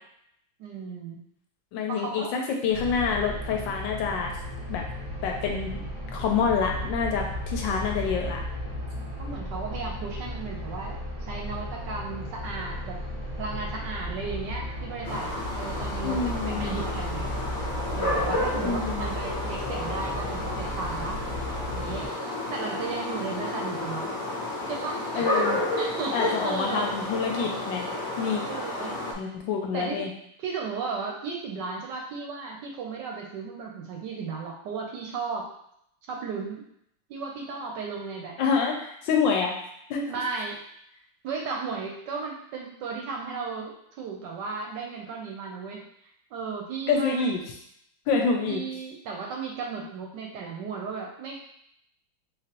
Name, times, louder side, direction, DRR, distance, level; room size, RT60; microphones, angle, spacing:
voice 1, 0.6-1.2 1.9-2.3 9.2-13.0 13.4-17.3 17.9-21.2 21.8-22.1 22.5-24.2 24.7-25.4 25.8-26.9 28.5-29.3 29.7-30.1 30.4-35.5 36.1-36.6 37.1-38.4 40.1-40.6 41.2-45.9 46.3-47.3 48.5-51.4, right 4 dB, 70° right, 0 dB, 1.2 m, -35 dB
voice 2, 1.7-4.3 4.7-4.8 5.2-5.7 6.1-8.4 16.0-16.7 18.6-19.1 25.1-25.6 26.1-27.9 28.2-28.4 29.2-30.1 38.4-39.5 39.9-40.0 46.9-47.4 48.1-48.6, left 5 dB, 75° left, 1 dB, 1.3 m, -27 dB
sound 1, 2.7-22.1, left 1 dB, 35° right, 0.4 m, -35 dB
sound 2, 15.0-29.1, left 1 dB, 55° left, 0.8 m, -31 dB
3.9 x 3.0 x 2.9 m, 0.73 s
omnidirectional pair, 2.1 m